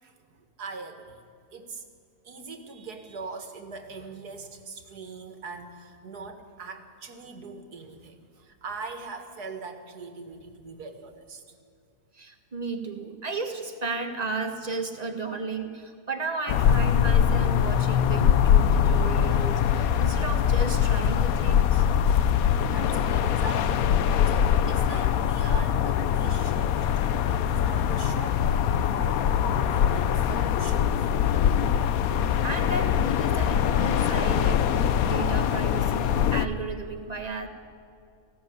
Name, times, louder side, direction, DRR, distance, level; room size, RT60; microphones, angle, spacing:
voice 1, 0.0-1.2 1.5-1.8 2.2-11.4 22.6-28.7 28.9-31.1, right 4 dB, 75° right, 7 dB, 2.3 m, -42 dB
voice 2, 12.1-21.9 32.1-37.5, right 3 dB, 25° right, 5 dB, 1.8 m, -34 dB
sound 1, 16.5-36.5, left 8 dB, 70° left, 1.1 m, -23 dB
18.5 x 16.0 x 9.4 m, 2.4 s
omnidirectional pair, 1.7 m